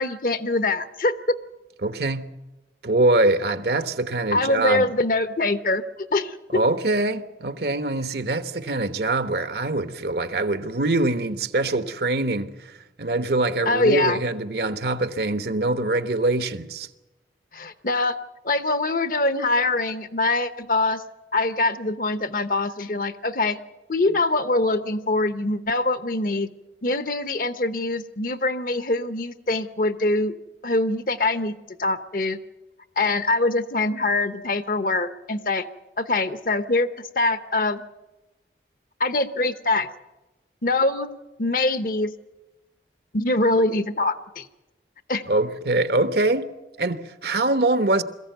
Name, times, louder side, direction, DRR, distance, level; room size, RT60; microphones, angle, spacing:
voice 1, 0.0-1.4 4.3-6.6 13.7-14.2 17.5-18.1 18.4-21.0 21.3-23.6 23.9-26.5 26.8-30.3 30.6-32.4 33.0-35.7 36.0-36.9 37.2-37.8 39.0-39.9 40.6-41.1 41.4-42.1 43.1-44.5 45.1-45.2, left 2 dB, 50° left, 1.0 m, -23 dB
voice 2, 1.8-2.3 2.8-4.9 6.5-16.9 45.3-46.5 46.8-48.0, right 2 dB, 65° right, 1.1 m, -23 dB
22.0 x 15.0 x 9.2 m
head